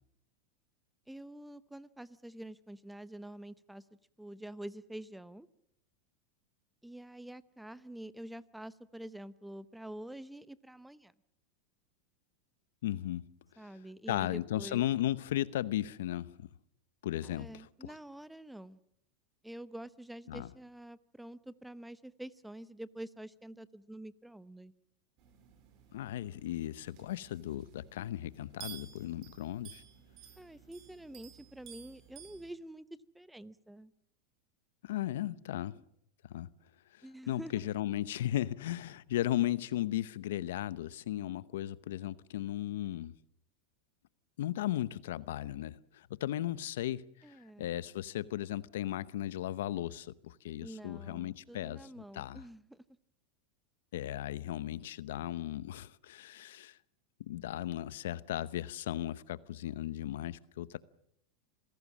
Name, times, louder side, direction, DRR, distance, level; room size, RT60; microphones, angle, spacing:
voice 1, 1.1-3.8 4.2-5.5 6.8-11.1 13.6-14.8 17.2-18.8 19.4-24.7 30.4-32.9 33.1-33.9 37.0-37.7 47.2-47.8 50.6-52.9, right 1 dB, 5° right, 0.8 m, -47 dB
voice 2, 12.8-13.2 14.1-16.5 17.0-17.9 20.3-20.5 25.9-29.8 34.8-35.7 36.3-36.5 37.3-43.1 44.4-51.8 52.1-52.4 53.9-56.8 57.2-60.8, left 13 dB, 80° left, 0.8 m, -36 dB
sound 1, 25.2-32.5, right 9 dB, 50° right, 4.8 m, -54 dB
27.5 x 17.0 x 7.4 m
hypercardioid pair, 115°, 0 cm